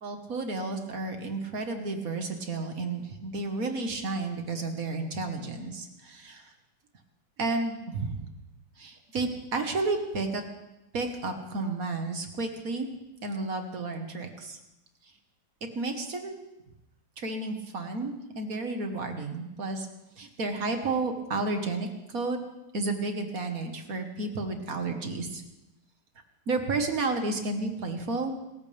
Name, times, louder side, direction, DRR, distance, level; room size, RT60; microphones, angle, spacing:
voice 1, 0.0-6.5 7.4-8.3 8.8-10.4 10.9-12.9 13.2-14.6 15.8-16.3 17.2-19.9 20.2-22.4 22.7-25.4 26.5-28.3, right 3 dB, 55° right, 5 dB, 2.0 m, -32 dB
27.0 x 14.5 x 3.5 m, 0.92 s
omnidirectional pair, 1.9 m